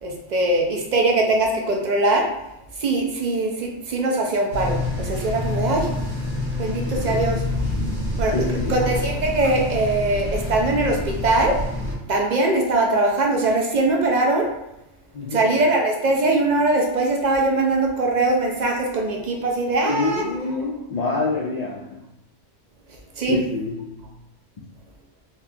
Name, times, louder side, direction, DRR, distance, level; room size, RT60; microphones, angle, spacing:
voice 1, 0.0-2.3 2.8-5.9 6.6-7.4 8.2-8.4 8.7-11.6 12.1-14.5 15.3-20.2 23.2-23.4, right 2 dB, 60° right, 0 dB, 0.4 m, -21 dB
sound 1, 4.5-11.9, left 2 dB, 80° right, 1.7 m, -27 dB
voice 2, 6.8-7.2 8.3-8.9 15.1-15.5 19.9-22.0 23.3-24.0, left 3 dB, 90° left, -4 dB, 0.3 m, -27 dB
4.0 x 2.2 x 2.7 m, 0.85 s
omnidirectional pair, 1.2 m